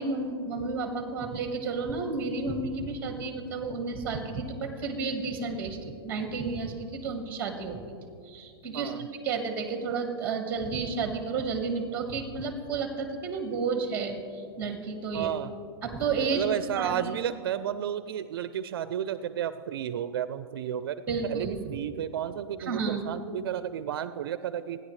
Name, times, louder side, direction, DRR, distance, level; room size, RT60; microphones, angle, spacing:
voice 1, 0.0-7.9 8.2-8.9 9.2-15.3 15.8-16.5 16.8-17.3 21.1-21.6 22.6-23.1, right 4 dB, 15° right, 5 dB, 1.5 m, -31 dB
voice 2, 8.7-9.1 15.1-15.5 16.3-24.8, right 10 dB, 60° right, 12 dB, 0.4 m, -32 dB
28.5 x 10.0 x 3.2 m, 2.4 s
supercardioid pair, 170°, 14 cm